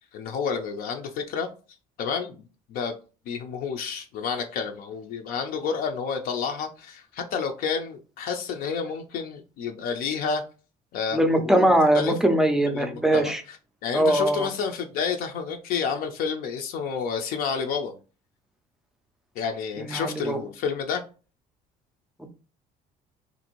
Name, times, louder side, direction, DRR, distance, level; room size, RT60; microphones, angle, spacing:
voice 1, 0.1-1.5 2.0-3.0 3.3-10.4 10.9-12.1 12.7-13.6 13.8-17.9 19.4-21.0, left 6 dB, 60° left, 0.5 m, -30 dB
voice 2, 11.1-13.4 13.9-14.5 19.8-20.4, right 1 dB, 5° right, 0.4 m, -21 dB
3.2 x 2.5 x 2.9 m
cardioid pair, 150°, 17 cm